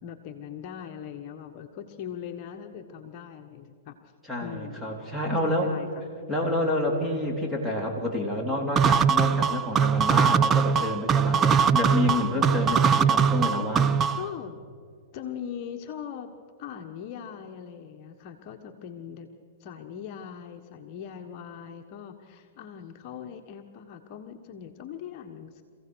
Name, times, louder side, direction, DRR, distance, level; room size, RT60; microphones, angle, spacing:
voice 1, 0.0-4.0 4.4-4.9 5.2-5.9 11.3-11.5 14.1-14.6 15.1-19.3 19.6-25.6, left 8 dB, 40° left, 3 dB, 1.4 m, -40 dB
voice 2, 4.2-5.7 6.3-14.0, left 1 dB, 5° right, -1 dB, 3.6 m, -28 dB
sound 1, 8.8-14.3, right 7 dB, 25° right, 0.6 m, -21 dB
26.0 x 16.0 x 6.3 m, 2.2 s
hypercardioid pair, 130°, 0 cm